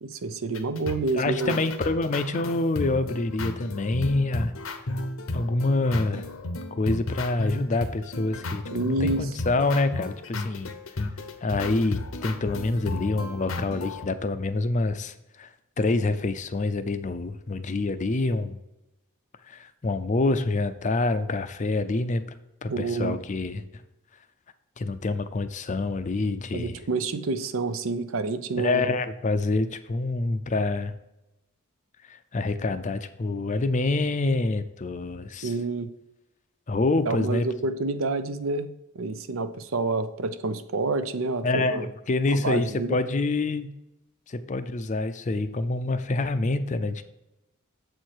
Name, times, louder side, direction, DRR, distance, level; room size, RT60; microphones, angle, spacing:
voice 1, 0.0-1.6 8.7-9.3 22.7-23.2 26.5-28.9 35.4-35.9 37.1-38.7 38.9-41.9 42.3-43.0, right 3 dB, 70° right, 11 dB, 0.6 m, -28 dB
sound 1, 0.5-14.1, left 2 dB, 80° left, 0.8 m, -34 dB
voice 2, 1.1-4.5 5.3-6.3 6.7-10.7 11.4-15.5 15.8-18.6 19.5-22.2 22.6-23.6 24.8-26.8 28.6-30.9 32.1-35.5 36.7-37.5 41.4-43.7 44.3-47.0, left 2 dB, 35° left, 11 dB, 0.5 m, -26 dB
7.6 x 4.5 x 4.7 m, 0.90 s
head